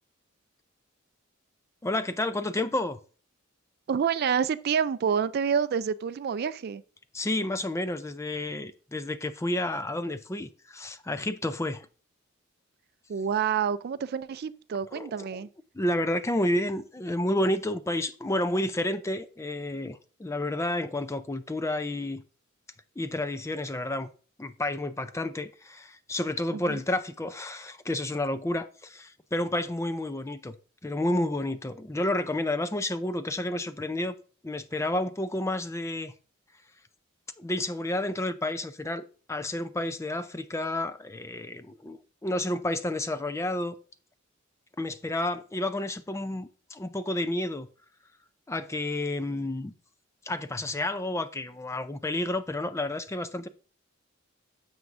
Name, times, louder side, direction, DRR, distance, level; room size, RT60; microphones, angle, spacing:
voice 1, 1.8-3.0 7.1-11.9 14.9-15.4 15.7-22.2 23.0-24.1 24.4-30.6 30.8-34.1 34.4-36.1 37.4-43.8 44.8-47.7 48.5-49.7 50.2-53.5, left 1 dB, 15° left, 0.4 m, -30 dB
voice 2, 3.9-6.8 13.1-15.5 26.5-26.8, right 7 dB, 50° right, 0.3 m, -28 dB
9.4 x 7.1 x 2.5 m
head